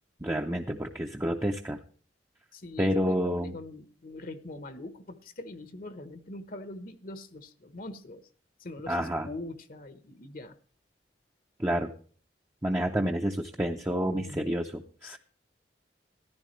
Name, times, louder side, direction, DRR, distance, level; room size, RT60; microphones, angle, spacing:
voice 1, 0.2-1.8 2.8-3.6 8.9-9.3 11.6-11.9 12.6-15.2, equal, 15° right, 2 dB, 0.7 m, -29 dB
voice 2, 2.5-8.3 8.6-10.6 14.0-14.6 15.0-15.2, left 2 dB, 50° left, 11 dB, 1.0 m, -43 dB
14.0 x 11.0 x 3.2 m, 0.43 s
head